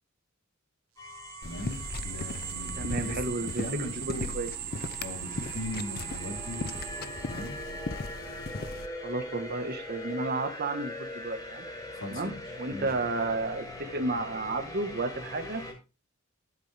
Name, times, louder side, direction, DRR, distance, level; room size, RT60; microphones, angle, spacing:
sound 1, 1.0-15.7, left 1 dB, 15° left, 5.1 m, -42 dB
sound 2, 1.0-7.6, right 17 dB, 70° right, 0.7 m, -40 dB
voice 1, 1.4-4.3 5.0-6.8 7.3-7.6 11.9-12.4 12.7-12.9, left 1 dB, 70° left, 2 dB, 3.7 m, -39 dB
sound 3, 1.4-8.9, left 3 dB, 45° left, 0.6 m, -38 dB
voice 2, 2.8-4.5 9.0-11.6 12.1-12.3 12.6-15.6, right 2 dB, 50° right, 5 dB, 1.6 m, -32 dB
14.0 x 8.3 x 3.5 m, 0.30 s
head